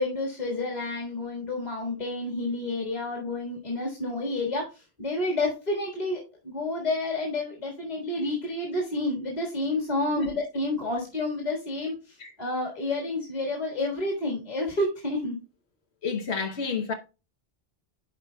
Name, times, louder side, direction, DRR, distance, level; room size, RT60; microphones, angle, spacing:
voice 1, 0.0-15.4, left 2 dB, 40° left, 1.8 m, -30 dB
voice 2, 16.0-16.9, left 5 dB, 80° left, 1.2 m, -29 dB
11.5 x 4.6 x 2.2 m
omnidirectional pair, 1.1 m